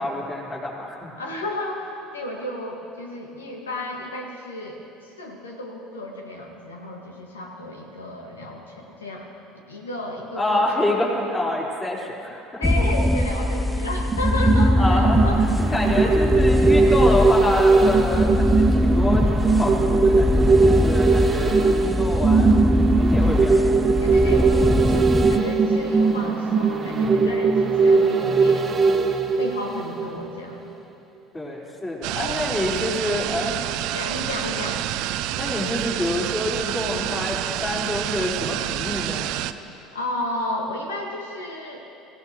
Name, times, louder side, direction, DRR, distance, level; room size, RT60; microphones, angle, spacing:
voice 1, 0.0-1.1 10.4-12.6 14.8-15.2 15.7-22.5 23.0-23.6 31.3-33.5 35.3-39.3, left 1 dB, 20° left, -4 dB, 4.2 m, -27 dB
voice 2, 1.2-9.3 9.7-10.9 12.6-16.2 21.4-21.8 24.0-28.8 29.1-30.7 32.1-32.4 33.0-33.1 33.9-34.8 39.8-41.9, left 1 dB, 80° left, 0 dB, 2.0 m, -33 dB
sound 1, 12.6-25.4, left 1 dB, 5° left, 0.5 m, -21 dB
sound 2, 14.1-30.3 30.7-30.8, right 4 dB, 25° right, 1.3 m, -20 dB
sound 3, 32.0-39.5, right 13 dB, 60° right, 0.5 m, -28 dB
25.0 x 16.0 x 3.2 m, 2.8 s
figure-of-eight pair, 65°, 0 cm